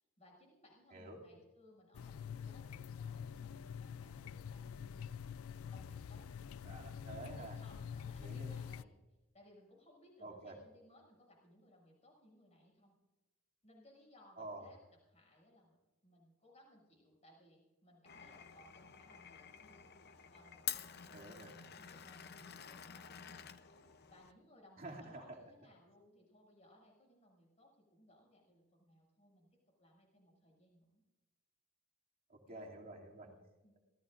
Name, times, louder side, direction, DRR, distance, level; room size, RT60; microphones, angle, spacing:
voice 1, 0.0-5.2 5.7-6.3 7.3-8.9 9.3-12.9 13.6-14.8 15.1-29.5 29.8-31.0 32.5-32.7 33.2-33.8, left 1 dB, 30° left, -2 dB, 6.7 m, -64 dB
voice 2, 0.9-1.2 6.6-7.6 8.2-8.7 10.2-10.6 14.4-14.7 21.1-21.5 24.8-25.2 32.3-33.3, right 2 dB, 40° right, -2 dB, 2.7 m, -49 dB
sound 1, 1.9-8.8, left 7 dB, 75° left, 0.4 m, -46 dB
Glass, 18.1-24.3, left 10 dB, 45° left, 0.7 m, -49 dB
26.5 x 17.5 x 2.6 m, 1.1 s
head